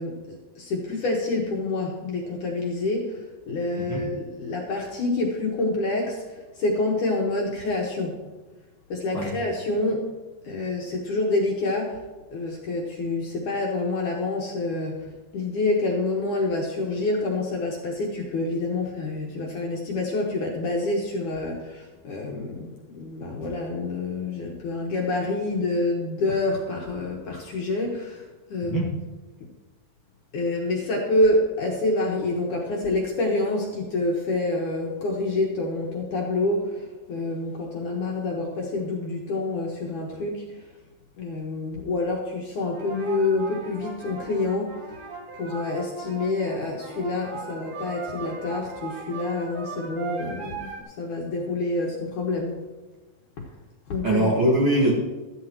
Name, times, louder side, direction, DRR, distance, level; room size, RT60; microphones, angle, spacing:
voice 1, 0.0-8.2 8.9-10.1 10.4-12.0 12.3-15.1 15.3-28.2 28.5-29.0 30.3-40.6 41.2-44.8 45.3-52.6 53.4-53.5 53.9-54.3, left 2 dB, 60° left, -1 dB, 2.5 m, -27 dB
sound 1, 42.7-50.8, right 5 dB, 60° right, 3.2 m, -38 dB
voice 2, 54.0-54.9, right 1 dB, 80° right, -2 dB, 1.1 m, -22 dB
14.5 x 13.0 x 3.0 m, 1.2 s
omnidirectional pair, 4.8 m